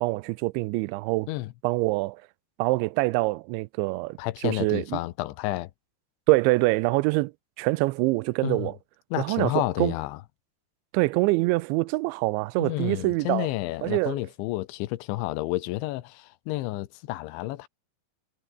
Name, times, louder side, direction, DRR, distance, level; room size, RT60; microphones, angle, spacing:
voice 1, 0.0-1.3 1.6-2.2 2.6-5.0 6.3-8.8 9.2-9.9 10.9-13.5 13.8-14.2, right 22 dB, 85° right, 2.9 m, -25 dB
voice 2, 4.2-5.7 8.4-8.7 9.1-10.2 12.6-17.7, left 17 dB, 90° left, 3.3 m, -30 dB
omnidirectional pair, 5.2 m